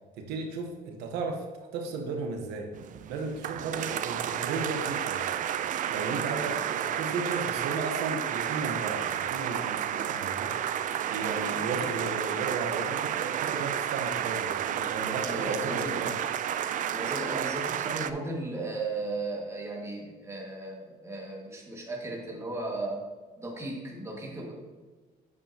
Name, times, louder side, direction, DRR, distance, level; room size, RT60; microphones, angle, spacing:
voice 1, 0.2-1.4 1.7-2.7 3.1-5.3 5.9-10.8 11.1-16.2, right 4 dB, 90° right, 3 dB, 1.0 m, -35 dB
sound 1, 2.7-18.1, right 10 dB, 50° right, 0.4 m, -31 dB
voice 2, 3.6-4.0 6.3-6.7 15.2-16.0 16.9-23.0 23.4-24.5, right 2 dB, 15° right, -2 dB, 1.9 m, -36 dB
8.5 x 6.9 x 2.9 m, 1.4 s
cardioid pair, 110°, 17 cm